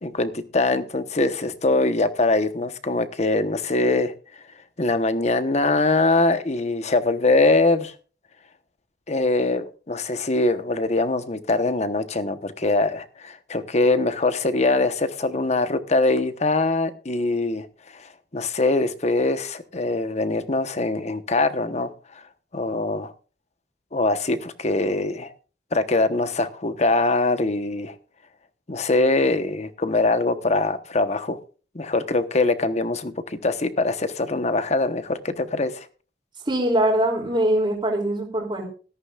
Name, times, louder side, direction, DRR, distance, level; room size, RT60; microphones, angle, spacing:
voice 1, 0.0-4.1 4.8-7.9 9.1-17.7 17.9-21.9 22.5-23.1 23.9-25.3 25.7-27.9 28.7-31.4 31.7-35.9, left 2 dB, 40° left, 11 dB, 1.0 m, -23 dB
voice 2, 36.4-38.6, right 1 dB, 30° right, -2 dB, 2.9 m, -22 dB
17.5 x 13.5 x 2.4 m, 0.37 s
head